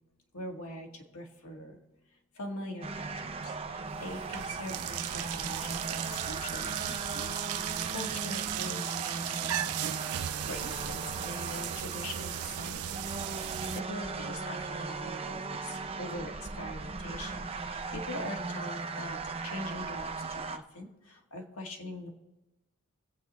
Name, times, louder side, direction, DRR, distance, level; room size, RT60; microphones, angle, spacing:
voice 1, 0.3-1.8 2.4-19.2 19.4-22.1, left 1 dB, 75° left, 0 dB, 1.9 m, -43 dB
sound 1, 2.8-20.6, right 4 dB, 30° right, 0.7 m, -38 dB
sound 2, 3.3-3.5 3.9-13.8, right 12 dB, 85° right, 0.4 m, -37 dB
24.5 x 8.2 x 3.1 m, 1.1 s
head